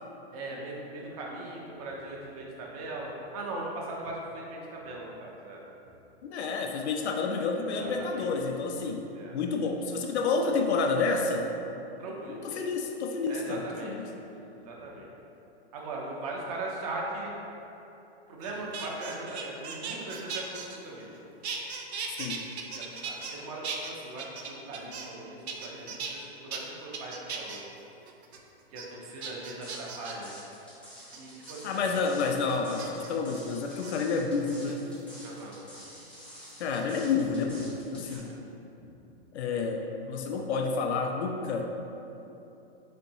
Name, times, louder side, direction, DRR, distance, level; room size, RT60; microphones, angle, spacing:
voice 1, 0.3-5.6 7.8-8.3 9.1-9.4 12.0-12.5 13.3-13.9 14.6-15.1 15.7-17.4 18.3-21.1 22.7-27.6 28.7-30.3 31.1-32.0 35.2-35.6 38.0-38.2, right 2 dB, 35° right, -2 dB, 0.6 m, -39 dB
voice 2, 6.3-11.5 12.3-14.1 22.2-22.5 31.6-34.9 36.6-38.3 39.3-41.7, left 4 dB, 90° left, 3 dB, 0.5 m, -29 dB
sound 1, 18.4-21.2 21.4-23.4 23.6-25.2 25.5-26.1 26.5-26.6 26.9-27.6 28.1-28.4 28.8-28.9 29.2-30.3 31.1-31.5 32.8-33.1 33.7-33.9 34.5-35.1 36.5-37.7 38.0-38.3, right 5 dB, 85° right, 0.6 m, -38 dB
sound 2, 29.6-38.2, equal, 5° left, 0.5 m, -49 dB
4.3 x 3.9 x 2.7 m, 3.0 s
hypercardioid pair, 150°, 32 cm